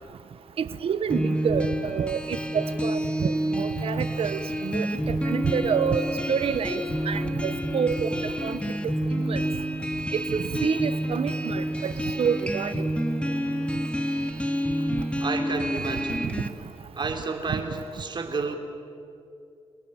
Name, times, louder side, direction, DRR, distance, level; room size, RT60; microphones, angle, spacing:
voice 1, 0.6-6.8 7.1-8.1 8.4-8.9 9.3-9.4 10.1-11.9 12.2-12.9 16.2-16.3 17.5-17.6, right 7 dB, 75° right, 12 dB, 1.1 m, -28 dB
Acoustic Guitar Loop, 1.1-16.5, equal, 10° left, 1.9 m, -28 dB
voice 2, 15.2-16.3 16.9-18.6, right 4 dB, 50° right, 5 dB, 3.4 m, -31 dB
29.5 x 18.5 x 9.0 m, 2.6 s
cardioid pair, 90°, 10 cm